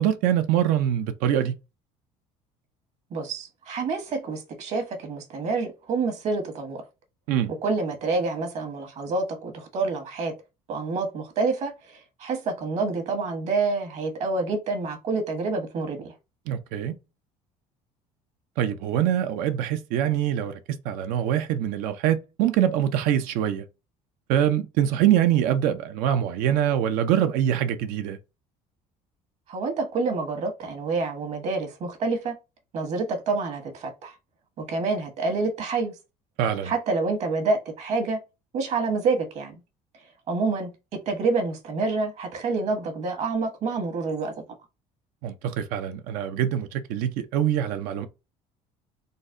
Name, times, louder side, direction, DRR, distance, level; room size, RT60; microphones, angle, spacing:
voice 1, 0.0-1.5 7.3-7.5 16.5-17.0 18.6-23.6 24.3-28.2 36.4-36.7 45.2-48.1, right 10 dB, 80° right, 0.6 m, -24 dB
voice 2, 3.1-6.8 7.6-10.3 10.7-16.1 29.5-32.3 32.7-34.1 34.6-35.9 36.6-38.2 38.5-39.5 40.3-40.7 41.1-44.3, right 3 dB, 50° right, 1.2 m, -27 dB
3.9 x 2.1 x 3.6 m
cardioid pair, 135°, 14 cm